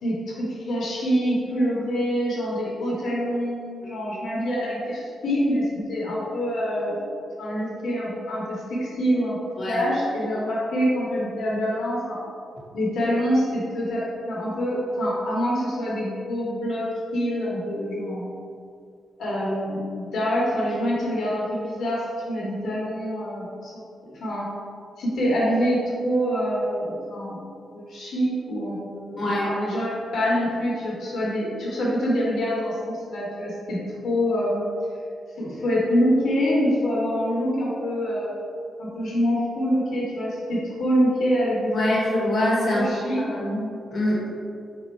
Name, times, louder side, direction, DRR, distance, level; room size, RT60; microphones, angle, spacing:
voice 1, 0.0-7.0 7.4-9.4 9.6-12.2 12.7-16.9 17.1-18.3 19.2-23.8 24.2-24.5 25.0-27.4 27.7-34.7 35.4-38.3 38.8-42.0 42.7-43.2, equal, 65° left, -6 dB, 1.1 m, -25 dB
voice 2, 29.2-29.5 41.7-42.9 43.2-43.6 43.9-44.2, left 1 dB, 35° left, -7 dB, 1.1 m, -24 dB
3.8 x 3.1 x 4.4 m, 2.4 s
wide cardioid pair, 170°, 0 cm